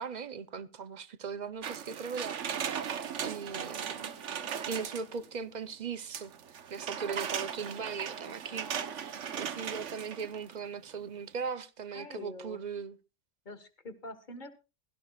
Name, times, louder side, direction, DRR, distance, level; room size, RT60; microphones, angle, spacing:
voice 1, 0.0-2.4 3.2-4.1 4.7-6.3 6.7-13.0, right 5 dB, 45° right, 0.7 m, -39 dB
sound 1, 1.6-5.3 6.1-10.5 10.9-11.0, right 7 dB, 85° right, 1.3 m, -38 dB
voice 2, 11.9-12.6 13.4-14.5, left 2 dB, 40° left, 1.6 m, -45 dB
16.5 x 16.0 x 2.3 m
omnidirectional pair, 1.2 m